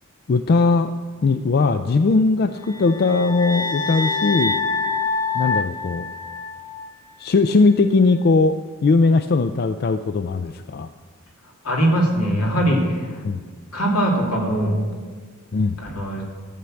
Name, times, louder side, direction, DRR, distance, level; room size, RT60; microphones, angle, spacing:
voice 1, 0.3-0.9 1.2-4.6 5.3-6.1 7.2-10.9 13.2-13.4 15.5-15.8, left 3 dB, 45° left, 10 dB, 0.4 m, -19 dB
sound 1, 2.6-6.9, left 4 dB, 20° left, 1.0 m, -26 dB
voice 2, 11.4-13.2 13.7-14.8 15.8-16.2, right 1 dB, 80° left, -1 dB, 2.8 m, -21 dB
13.0 x 7.0 x 7.6 m, 1.5 s
head